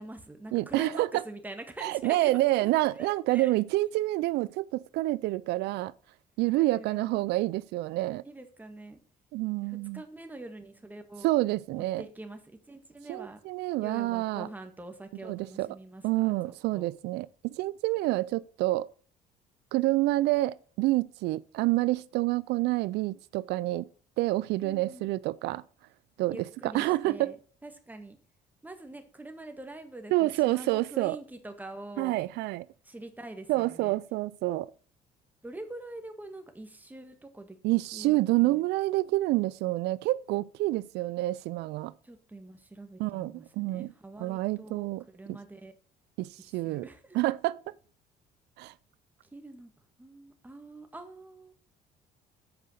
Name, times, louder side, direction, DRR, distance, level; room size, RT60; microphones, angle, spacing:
voice 1, 0.0-3.5 6.6-7.3 8.2-9.0 9.6-11.3 11.7-12.4 12.7-13.4 13.8-16.9 24.6-25.1 26.3-27.3 27.6-28.2 28.6-32.2 32.8-33.9 35.4-37.6 37.9-38.6 42.0-45.7 46.6-47.2 49.3-49.7 50.0-51.5, right 2 dB, 10° right, 1.7 m, -45 dB
voice 2, 0.5-1.1 1.8-5.9 6.4-8.2 9.3-10.0 11.2-12.0 13.1-14.5 15.2-15.7 16.0-18.9 19.7-23.9 24.2-25.6 26.2-27.3 30.1-31.2 32.0-32.6 33.5-34.7 37.6-41.9 43.0-43.9 44.2-45.0 45.3-45.4 46.2-46.8 47.1-47.7 48.6-48.7, right 18 dB, 80° right, 0.4 m, -28 dB
8.1 x 5.1 x 6.3 m
cardioid pair, 110°, 17 cm